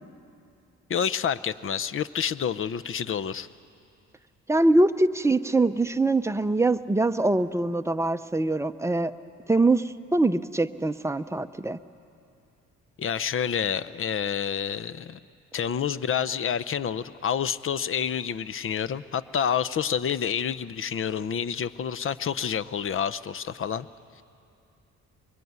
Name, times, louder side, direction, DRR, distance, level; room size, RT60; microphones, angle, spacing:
voice 1, 0.9-3.5 13.0-15.2 15.5-23.9, left 8 dB, 45° left, 16 dB, 0.7 m, -28 dB
voice 2, 4.5-9.1 9.5-11.8, right 2 dB, 10° right, 10 dB, 0.7 m, -23 dB
24.0 x 22.5 x 9.5 m, 2.6 s
cardioid pair, 90°, 30 cm